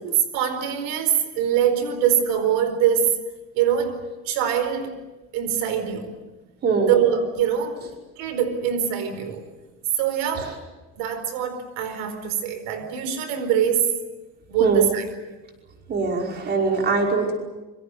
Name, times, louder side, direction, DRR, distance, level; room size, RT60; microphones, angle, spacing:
voice 1, 0.0-3.1 3.5-4.0 4.2-4.9 5.3-6.1 6.9-7.8 8.2-9.4 10.0-10.6 11.0-14.0 14.5-15.0, right 9 dB, 90° right, 10 dB, 4.6 m, -23 dB
voice 2, 6.6-7.0 10.3-10.5 14.6-14.9 15.9-17.3, right 4 dB, 30° right, 2 dB, 5.4 m, -22 dB
26.0 x 25.0 x 8.0 m, 1.1 s
cardioid pair, 170°, 31 cm